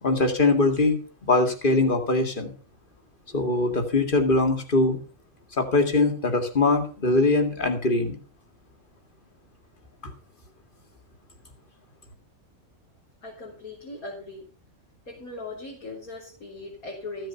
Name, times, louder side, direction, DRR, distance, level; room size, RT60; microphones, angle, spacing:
voice 1, 0.0-2.5 3.3-5.0 5.6-8.2 10.0-10.1, left 2 dB, 35° left, 5 dB, 2.3 m, -22 dB
voice 2, 13.2-14.5 15.1-17.3, left 2 dB, 90° left, -4 dB, 4.2 m, -39 dB
15.0 x 7.8 x 5.6 m, 0.39 s
omnidirectional pair, 1.5 m